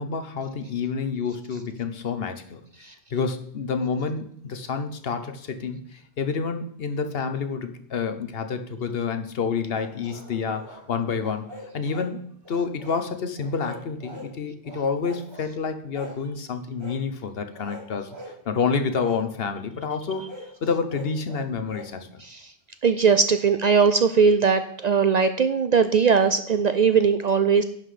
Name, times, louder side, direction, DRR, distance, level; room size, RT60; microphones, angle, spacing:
voice 1, 0.0-2.6 3.1-18.1 18.5-20.3 20.6-22.2, left 5 dB, 65° left, 8 dB, 1.1 m, -28 dB
sound 1, 9.7-10.8 11.2-12.1 12.4-13.1 13.4-14.3 14.6-15.5 15.9-16.2 16.8-17.0 17.5-18.4 19.0-19.2 20.1-21.9, left 1 dB, 25° right, 2.8 m, -42 dB
voice 2, 22.8-27.6, right 5 dB, 55° right, 10 dB, 0.5 m, -19 dB
11.0 x 5.9 x 5.0 m, 0.67 s
omnidirectional pair, 1.1 m